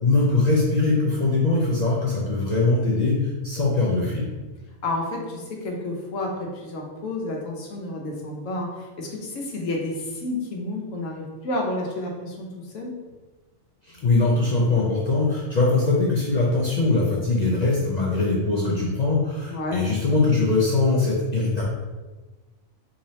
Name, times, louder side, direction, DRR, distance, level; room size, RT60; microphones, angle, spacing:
voice 1, 0.0-4.3 13.8-21.6, left 3 dB, 55° left, -5 dB, 0.4 m, -22 dB
voice 2, 4.8-12.5 12.7-12.9 19.5-19.8, left 2 dB, 75° left, 0 dB, 1.1 m, -30 dB
3.8 x 2.7 x 3.1 m, 1.2 s
omnidirectional pair, 1.3 m